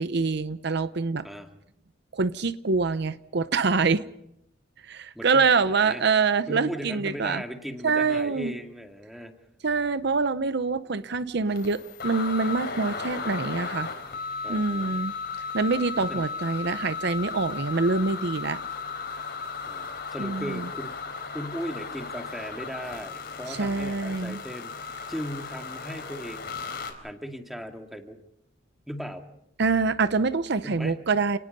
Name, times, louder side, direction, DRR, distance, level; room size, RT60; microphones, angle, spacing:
voice 1, 0.0-1.2 2.1-4.0 4.8-7.4 7.8-8.5 9.6-13.9 14.5-15.1 15.5-18.6 20.2-20.7 23.5-24.4 29.6-31.4, right 4 dB, 65° right, 13 dB, 0.8 m, -25 dB
voice 2, 5.1-6.0 6.5-9.3 14.4-15.0 16.0-16.2 19.7-26.5 27.0-28.2 28.9-29.2 30.6-31.1, equal, ahead, 4 dB, 2.2 m, -38 dB
sound 1, 11.1-11.2 11.5-26.9, left 5 dB, 60° left, 4.3 m, -35 dB
29.5 x 19.5 x 5.4 m, 0.80 s
head